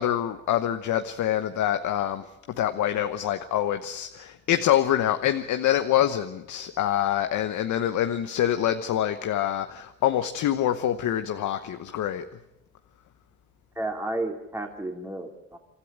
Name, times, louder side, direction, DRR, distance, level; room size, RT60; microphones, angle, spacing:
voice 1, 0.0-2.3 2.6-12.3, left 11 dB, 75° left, 8 dB, 1.1 m, -25 dB
voice 2, 13.7-15.6, right 2 dB, 10° right, 3 dB, 2.7 m, -32 dB
28.5 x 13.0 x 8.9 m, 0.90 s
cardioid pair, 90°, 30 cm